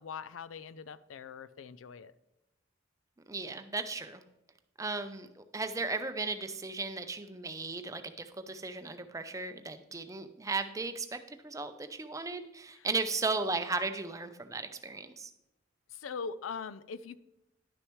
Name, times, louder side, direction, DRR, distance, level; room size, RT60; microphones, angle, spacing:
voice 1, 0.0-2.1 12.7-12.9 15.9-17.2, left 5 dB, 90° left, 15 dB, 0.4 m, -42 dB
voice 2, 3.3-4.2 4.8-5.3 5.5-11.2 11.4-15.3, right 3 dB, 15° right, 9 dB, 0.5 m, -36 dB
11.5 x 6.4 x 3.1 m, 0.90 s
head